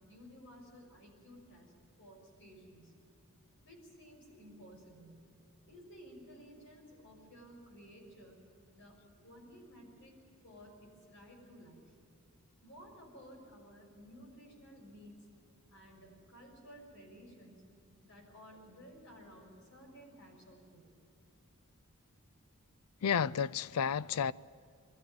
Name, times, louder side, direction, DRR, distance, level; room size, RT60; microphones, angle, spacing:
voice 1, 0.0-1.7 2.0-3.0 3.6-5.3 5.7-8.4 8.7-10.2 10.4-11.9 12.6-15.3 15.7-17.6 18.0-20.9, equal, 55° left, 6.4 m, -55 dB
voice 2, 23.0-24.3, left 7 dB, 75° left, 0.4 m, -31 dB
22.5 x 14.0 x 9.5 m
head